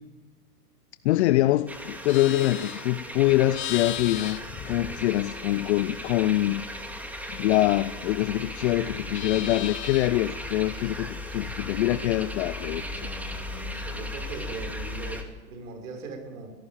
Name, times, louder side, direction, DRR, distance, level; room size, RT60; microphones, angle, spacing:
voice 1, 1.0-6.6 7.3-12.8, left 15 dB, 45° left, 0.7 m, -24 dB
sound 1, 1.7-15.2, left 1 dB, 5° right, 2.3 m, -37 dB
Livestock farm animals working animals, 1.8-5.5 5.8-8.4 8.7-10.3, left 13 dB, 25° left, 1.1 m, -39 dB
voice 2, 12.6-16.5, right 3 dB, 60° right, 6.0 m, -40 dB
24.0 x 17.0 x 7.4 m
hypercardioid pair, 125°, 48 cm